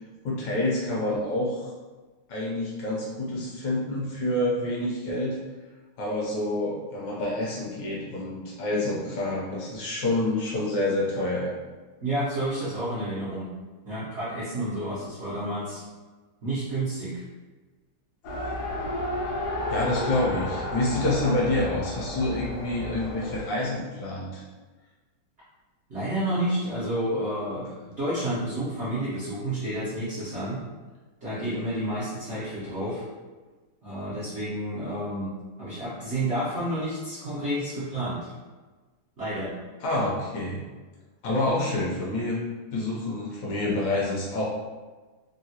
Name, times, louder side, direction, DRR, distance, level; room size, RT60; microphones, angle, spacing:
voice 1, 0.2-1.7 2.3-5.4 6.0-11.5 19.7-24.4 39.8-40.6 41.2-42.4 42.7-44.4, left 1 dB, 70° left, -5 dB, 1.1 m, -27 dB
voice 2, 12.0-13.5 13.9-15.8 16.4-17.2 25.9-30.6 31.2-33.1 33.8-38.3 39.2-39.5, right 1 dB, 85° right, -11 dB, 0.6 m, -30 dB
Race car auto racing, 18.2-23.4, left 1 dB, 90° left, 1.5 m, -32 dB
3.8 x 2.1 x 2.7 m, 1.3 s
omnidirectional pair, 2.4 m